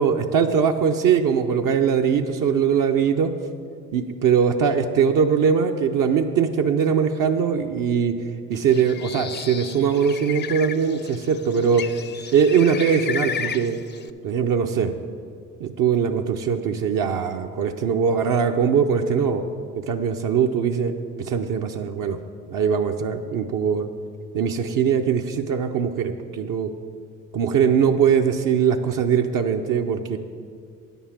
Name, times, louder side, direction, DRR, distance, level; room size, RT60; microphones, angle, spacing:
voice 1, 0.0-3.3 3.9-8.2 8.5-11.9 12.3-13.8 14.2-14.9 15.6-19.5 19.8-22.2 22.5-23.9 24.3-26.7 27.3-30.2, right 7 dB, 60° right, 4 dB, 0.7 m, -21 dB
Bird, 8.6-14.1, left 7 dB, 30° left, 0.4 m, -34 dB
9.3 x 5.5 x 7.2 m, 2.2 s
supercardioid pair, 70°, 36 cm